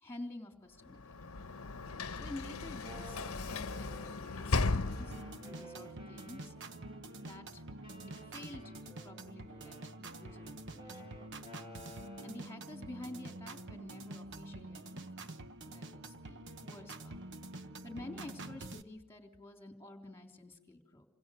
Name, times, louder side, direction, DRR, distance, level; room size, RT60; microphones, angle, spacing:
voice 1, 0.0-1.3 2.1-5.2 5.4-6.5 7.2-7.6 8.2-11.2 12.2-15.3 15.7-17.2 17.8-21.1, left 1 dB, 10° left, 3 dB, 3.5 m, -50 dB
Sliding door / Slam, 0.8-5.6, left 3 dB, 65° left, 1.0 m, -36 dB
Wind instrument woodwind instrument, 2.8-7.3 7.8-12.5, right 1 dB, 25° right, 5.2 m, -54 dB
sound 1, 5.1-18.8, right 2 dB, 55° right, 1.1 m, -47 dB
28.5 x 26.5 x 6.6 m, 0.82 s
head